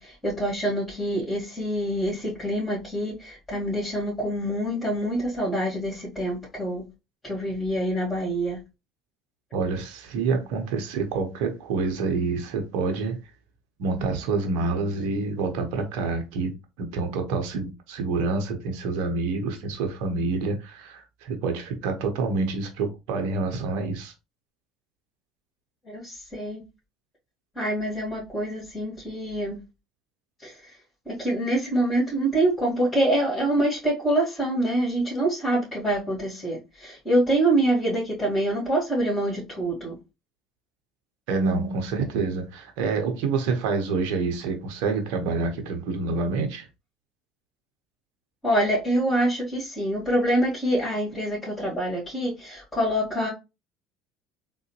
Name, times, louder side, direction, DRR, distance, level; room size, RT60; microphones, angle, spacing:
voice 1, 0.0-6.8 7.2-8.6 25.9-26.6 27.6-29.6 30.4-30.7 31.1-40.0 48.4-53.3, right 1 dB, 20° left, 2.1 m, -25 dB
voice 2, 9.5-13.2 13.8-16.5 16.8-24.1 41.3-46.7, right 4 dB, 70° right, 0.9 m, -27 dB
3.8 x 2.1 x 2.9 m
hypercardioid pair, 75°, 0 cm